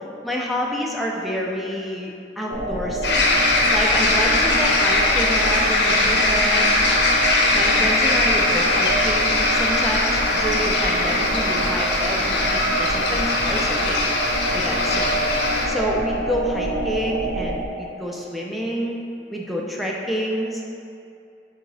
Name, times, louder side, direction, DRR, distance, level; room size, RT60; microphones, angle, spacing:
voice 1, 0.2-3.2 3.7-6.7 7.5-14.0 14.5-15.1 15.7-19.0 19.3-20.6, equal, ahead, -2 dB, 0.4 m, -28 dB
sound 1, 2.5-17.7, right 1 dB, 60° right, 0.5 m, -27 dB
sound 2, 3.0-15.7, left 2 dB, 80° left, 0.7 m, -20 dB
6.9 x 2.8 x 2.7 m, 2.6 s
head